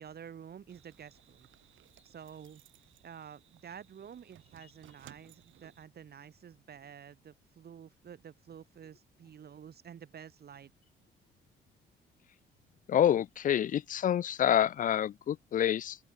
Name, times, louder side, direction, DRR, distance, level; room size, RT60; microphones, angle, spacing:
voice 1, 0.0-1.5 2.0-2.6 3.0-10.7, right 8 dB, 55° right, 2.5 m, -50 dB
sound 1, 0.7-5.8, right 13 dB, 80° right, 4.1 m, -60 dB
voice 2, 12.9-16.0, left 10 dB, 45° left, 0.4 m, -27 dB
open air
cardioid pair, 90°, 20 cm